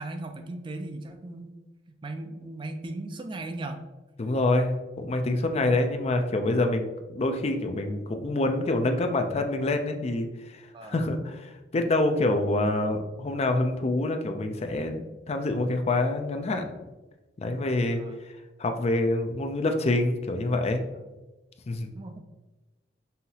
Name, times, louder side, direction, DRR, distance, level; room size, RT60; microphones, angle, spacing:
voice 1, 0.0-1.5 2.0-3.8 4.3-4.5 10.7-11.0 17.8-18.2 21.9-22.2, right 2 dB, 30° right, 6 dB, 0.4 m, -37 dB
voice 2, 4.2-16.8 17.4-18.0 18.6-20.8 21.7-21.9, left 2 dB, 35° left, 6 dB, 0.4 m, -26 dB
5.5 x 2.7 x 2.8 m, 1.1 s
head